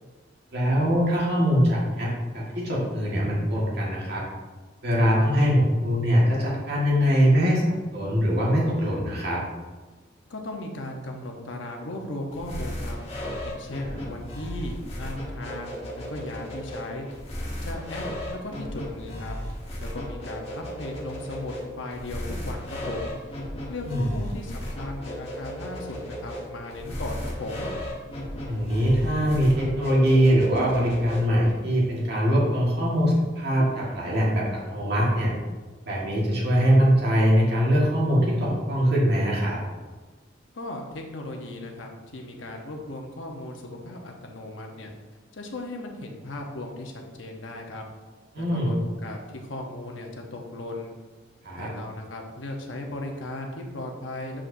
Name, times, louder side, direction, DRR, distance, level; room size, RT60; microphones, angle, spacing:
voice 1, 0.5-4.2 4.8-9.4 13.8-14.0 23.8-24.1 28.4-35.3 35.9-39.6 48.3-48.7 51.4-51.7, equal, 60° right, -5 dB, 1.6 m, -22 dB
voice 2, 10.3-13.0 13.4-17.1 17.6-19.4 19.8-23.4 23.7-27.7 40.5-44.9 45.3-47.8 48.4-50.9 51.5-54.4, left 2 dB, 80° left, 1 dB, 0.9 m, -37 dB
sound 1, 12.3-31.5, equal, 35° left, 1.3 m, -35 dB
7.3 x 5.0 x 2.7 m, 1.3 s
head